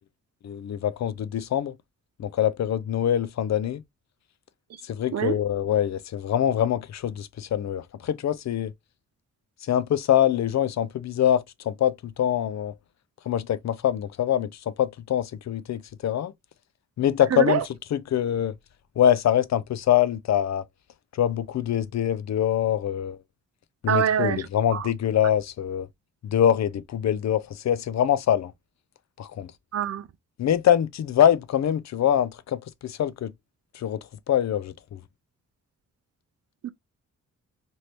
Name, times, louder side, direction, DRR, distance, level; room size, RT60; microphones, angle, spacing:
voice 1, 0.4-1.8 2.2-3.8 4.8-8.7 9.6-12.7 13.3-16.3 17.0-17.6 17.9-18.6 19.0-20.6 21.1-23.2 23.8-25.9 26.2-28.5 29.2-29.5 30.4-33.3 33.7-35.0, left 10 dB, 60° left, 0.5 m, -24 dB
voice 2, 17.3-17.6 23.9-24.4 24.7-24.9 29.7-30.1 36.6-36.7, right 9 dB, 50° right, 0.4 m, -24 dB
2.8 x 2.7 x 3.2 m
cardioid pair, 70°, 32 cm